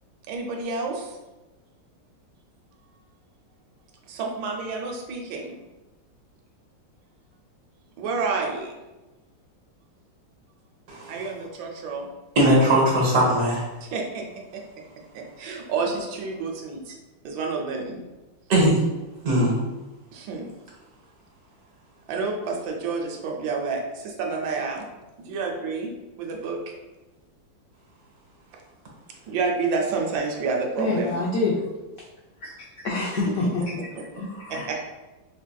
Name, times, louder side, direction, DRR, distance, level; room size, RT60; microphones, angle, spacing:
voice 1, 0.3-1.2 4.1-5.6 8.0-8.8 11.1-12.1 13.8-14.2 14.5-14.6 15.1-17.0 17.2-18.0 20.1-20.5 22.1-24.8 25.2-25.9 26.2-26.6 29.1-31.2 33.9-34.0 34.7-34.8, right 4 dB, 80° right, 1 dB, 1.3 m, -29 dB
voice 2, 10.9-11.2 12.4-13.7 18.5-18.8 19.2-19.7, right 1 dB, 60° right, -3 dB, 1.2 m, -20 dB
voice 3, 30.8-31.5 32.4-33.8 34.1-34.8, left 3 dB, 80° left, -4 dB, 0.7 m, -27 dB
4.6 x 2.6 x 2.2 m, 1.1 s
omnidirectional pair, 2.1 m